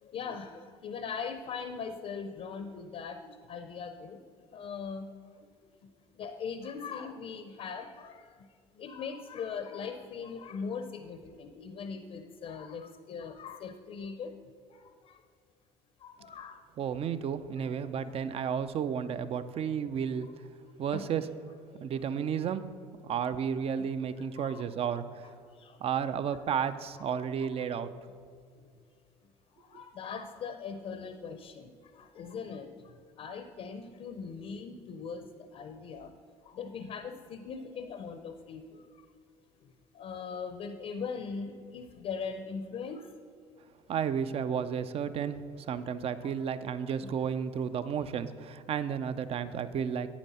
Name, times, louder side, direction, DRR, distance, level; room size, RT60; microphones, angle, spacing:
voice 1, 0.0-4.2 4.5-5.1 6.2-8.3 8.8-14.3 14.7-15.2 16.0-16.6 17.6-18.2 20.9-21.1 21.7-21.8 23.8-23.9 24.4-24.7 25.6-25.8 26.3-26.4 27.1-27.7 29.5-36.1 36.4-38.8 39.9-43.1 45.7-45.9 46.2-46.3 47.0-47.1 47.8-47.9 49.4-49.5, left 5 dB, 55° left, 9 dB, 0.6 m, -40 dB
voice 2, 16.8-20.3 20.8-21.2 21.8-22.6 23.0-25.3 25.8-27.9 43.9-50.1, right 7 dB, 50° right, 13 dB, 0.5 m, -32 dB
9.0 x 7.2 x 4.2 m, 2.2 s
supercardioid pair, 70°, 13 cm